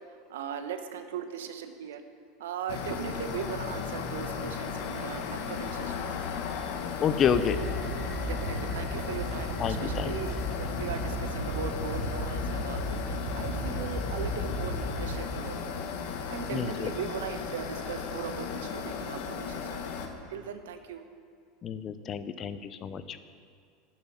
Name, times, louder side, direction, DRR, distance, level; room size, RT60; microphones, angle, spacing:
voice 1, 0.3-2.0 2.4-6.1 8.2-15.8 16.3-19.8 20.3-21.0, right 7 dB, 80° right, 8 dB, 1.1 m, -38 dB
sound 1, 2.7-20.1, left 6 dB, 65° left, 1.5 m, -36 dB
voice 2, 7.0-7.6 9.6-10.1 16.5-16.9 21.6-23.2, left 8 dB, 40° left, 12 dB, 0.8 m, -29 dB
sound 2, 7.2-15.1, equal, 20° right, 3.8 m, -35 dB
11.5 x 7.4 x 9.1 m, 2.1 s
hypercardioid pair, 100°, 0 cm